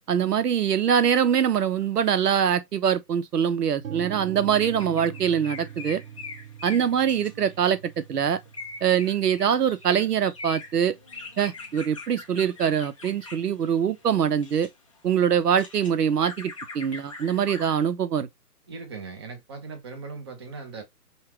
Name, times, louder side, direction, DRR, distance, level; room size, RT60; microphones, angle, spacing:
voice 1, 0.1-6.0 6.6-8.4 8.8-10.9 11.4-14.7 15.0-18.3, right 8 dB, 75° right, 1.0 m, -23 dB
sound 1, 3.8-11.7, right 9 dB, 55° right, 1.3 m, -43 dB
sound 2, 4.6-7.8 8.5-14.7 15.2-17.9, left 4 dB, 20° left, 0.5 m, -42 dB
voice 2, 18.7-20.8, right 4 dB, 15° right, 0.7 m, -39 dB
5.6 x 2.3 x 3.0 m
hypercardioid pair, 160°, 48 cm